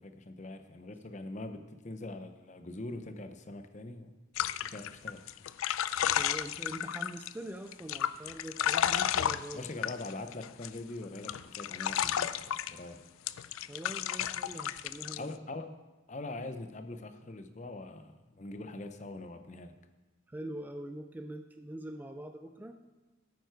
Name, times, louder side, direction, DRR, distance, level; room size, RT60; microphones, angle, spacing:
voice 1, 0.0-4.1 4.6-5.2 9.5-13.0 15.2-15.8 16.1-19.8, left 2 dB, 35° left, 8 dB, 0.6 m, -43 dB
sound 1, 4.4-7.3 7.7-10.8 11.1-12.8 13.3-15.2, left 10 dB, 85° left, 0.4 m, -32 dB
voice 2, 6.2-9.7 13.7-15.4 20.3-22.8, right 1 dB, 10° right, 7 dB, 0.4 m, -43 dB
12.5 x 9.4 x 4.6 m, 1.2 s
head